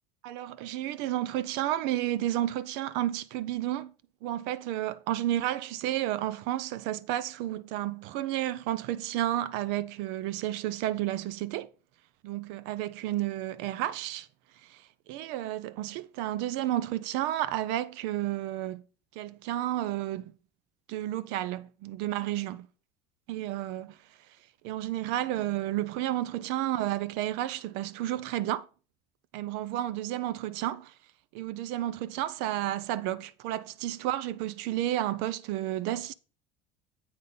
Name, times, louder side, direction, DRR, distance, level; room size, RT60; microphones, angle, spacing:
voice 1, 0.2-3.9 4.2-11.7 12.2-14.3 14.6-18.8 19.1-20.3 20.9-22.7 23.3-24.0 24.6-28.7 29.3-30.9 31.3-36.1, right 13 dB, 75° right, 0.5 m, -31 dB
7.9 x 4.0 x 5.4 m
supercardioid pair, 105°, 18 cm